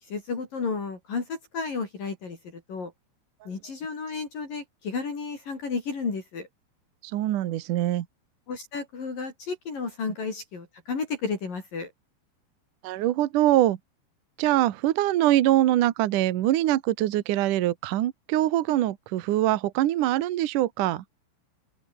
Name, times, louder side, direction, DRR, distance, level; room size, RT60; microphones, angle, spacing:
voice 1, 0.1-2.9 3.5-6.5 8.5-11.9, left 4 dB, 45° left, 6.2 m, -32 dB
voice 2, 7.1-8.1 12.8-13.8 14.4-21.0, right 14 dB, 85° right, 1.8 m, -23 dB
open air
omnidirectional pair, 5.7 m